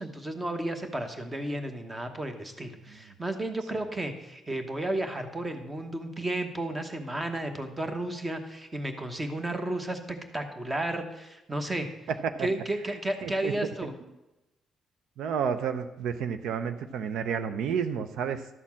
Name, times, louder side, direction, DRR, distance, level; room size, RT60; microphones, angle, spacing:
voice 1, 0.0-11.9 12.4-13.9, right 1 dB, 15° right, 7 dB, 1.1 m, -33 dB
voice 2, 12.1-12.5 12.9-13.7 15.2-18.5, right 7 dB, 80° right, 11 dB, 0.5 m, -31 dB
12.0 x 4.3 x 7.2 m, 0.99 s
cardioid pair, 120°, 0 cm